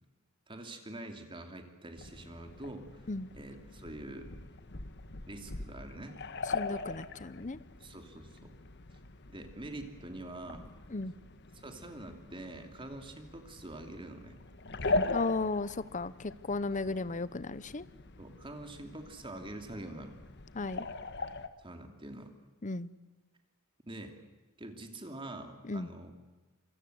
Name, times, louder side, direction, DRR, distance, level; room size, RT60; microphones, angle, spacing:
voice 1, 0.5-3.0 3.3-4.3 5.3-6.2 7.8-8.5 9.3-10.7 11.5-14.4 16.9-17.0 18.2-20.1 21.6-22.3 23.8-24.1 24.6-26.1, right 1 dB, 25° right, 5 dB, 2.8 m, -45 dB
sound 1, 2.0-21.5, left 3 dB, 50° left, 1.5 m, -41 dB
voice 2, 6.5-7.6 10.9-11.1 15.1-17.8 20.5-20.8 22.6-22.9 25.7-25.9, left 3 dB, 35° left, 17 dB, 0.8 m, -35 dB
27.0 x 23.5 x 8.0 m, 1.2 s
head